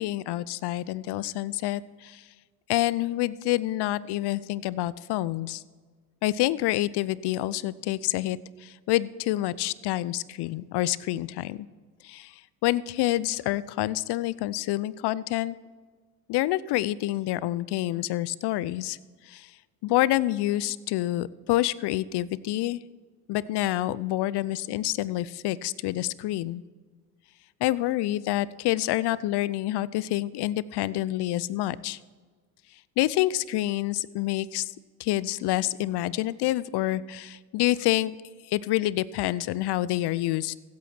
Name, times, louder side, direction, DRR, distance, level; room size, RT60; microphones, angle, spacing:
voice 1, 0.0-2.2 2.7-5.6 6.2-11.7 12.0-15.6 16.3-19.0 19.3-19.5 19.8-22.8 23.3-26.6 27.6-32.0 33.0-34.7 35.0-38.1 38.5-40.5, left 15 dB, 55° left, 20 dB, 0.7 m, -27 dB
15.5 x 8.4 x 4.4 m, 1.5 s
hypercardioid pair, 60°, 49 cm